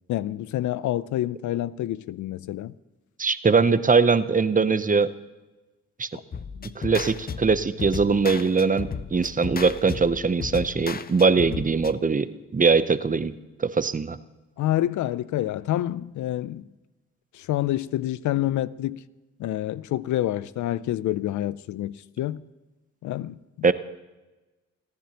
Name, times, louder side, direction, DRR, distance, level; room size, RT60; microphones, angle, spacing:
voice 1, 0.1-2.7 6.5-6.7 14.6-16.6 17.3-19.0 19.4-22.4 23.0-23.7, left 13 dB, 80° left, 0.4 m, -28 dB
voice 2, 3.2-5.1 6.0-6.1 6.8-13.3 13.6-14.2 23.6-23.7, right 4 dB, 30° right, 0.7 m, -21 dB
sound 1, 6.3-11.9, left 6 dB, 30° left, 0.6 m, -35 dB
28.5 x 10.5 x 2.9 m
cardioid pair, 55°, 29 cm